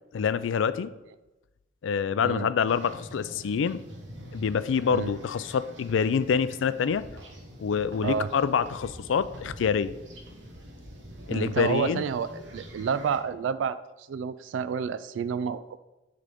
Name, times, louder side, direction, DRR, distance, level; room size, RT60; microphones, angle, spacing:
voice 1, 0.1-0.9 1.8-3.8 4.3-7.0 7.6-9.9 11.3-12.0, left 6 dB, 90° left, 15 dB, 0.4 m, -26 dB
sound 1, 2.7-13.2, equal, 70° right, 1.2 m, -46 dB
voice 2, 11.3-12.3 12.5-15.8, right 6 dB, 90° right, 13 dB, 0.3 m, -29 dB
9.6 x 3.8 x 3.5 m, 1.0 s
head